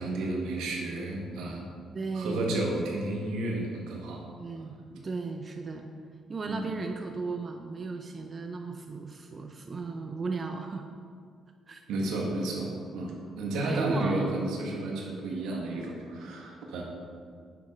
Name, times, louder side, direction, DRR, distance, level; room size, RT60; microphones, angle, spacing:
voice 1, 0.0-1.6 2.1-4.2 6.4-6.7 11.9-16.8, right 2 dB, 90° right, -1 dB, 1.5 m, -32 dB
voice 2, 1.9-2.6 4.4-5.9 6.3-10.9 11.7-11.8 13.6-14.3, right 4 dB, 40° right, 4 dB, 0.6 m, -36 dB
7.4 x 5.8 x 5.2 m, 2.2 s
cardioid pair, 90°, 0 cm